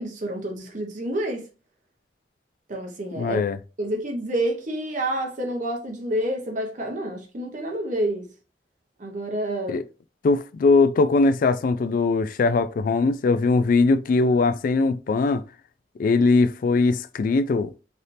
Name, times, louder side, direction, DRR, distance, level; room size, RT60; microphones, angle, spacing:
voice 1, 0.0-1.5 2.7-3.4 3.8-8.3 9.0-9.8, right 1 dB, 45° right, 0.8 m, -28 dB
voice 2, 3.1-3.6 9.7-9.8 10.2-15.4 16.0-17.7, left 3 dB, 50° left, 0.3 m, -20 dB
3.3 x 2.8 x 2.5 m
head